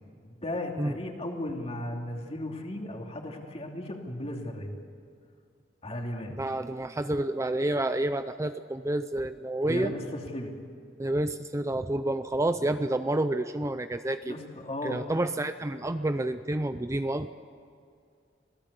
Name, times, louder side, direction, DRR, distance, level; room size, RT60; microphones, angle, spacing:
voice 1, 0.2-4.7 5.8-6.4 9.6-10.5 14.2-15.1, left 1 dB, 35° left, 2 dB, 2.9 m, -35 dB
voice 2, 6.4-9.9 11.0-14.3 14.8-17.3, right 1 dB, 15° right, 10 dB, 0.5 m, -29 dB
26.5 x 17.5 x 8.3 m, 2.3 s
head